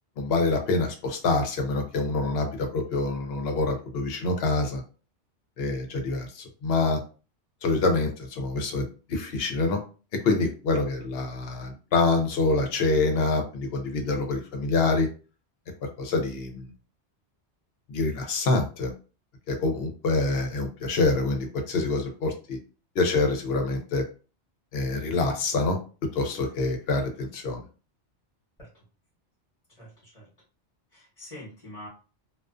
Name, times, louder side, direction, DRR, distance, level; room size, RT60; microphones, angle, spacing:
voice 1, 0.2-4.8 5.6-7.0 7.6-9.8 10.2-15.1 16.0-16.7 17.9-18.9 19.5-22.6 23.0-24.0 24.7-25.8 26.1-27.6, left 3 dB, 65° left, 4 dB, 0.8 m, -26 dB
voice 2, 29.7-30.3 30.9-31.9, left 1 dB, 35° left, -6 dB, 1.1 m, -44 dB
2.3 x 2.3 x 2.4 m, 0.35 s
omnidirectional pair, 1.2 m